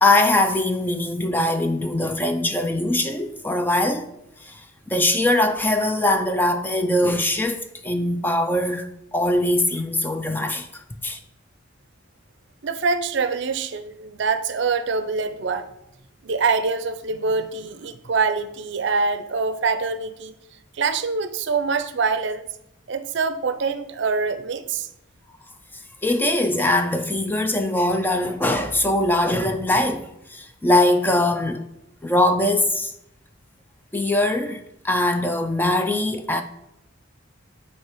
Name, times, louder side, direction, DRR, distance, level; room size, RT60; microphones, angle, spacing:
voice 1, 0.0-4.1 4.4-4.6 4.9-11.2 26.0-31.6 32.0-32.9 33.9-36.4, left 1 dB, 10° left, 0.3 m, -22 dB
voice 2, 12.6-15.7 16.2-20.3 20.7-22.4 22.9-24.9, right 4 dB, 60° right, 0.5 m, -24 dB
8.6 x 3.2 x 4.6 m
head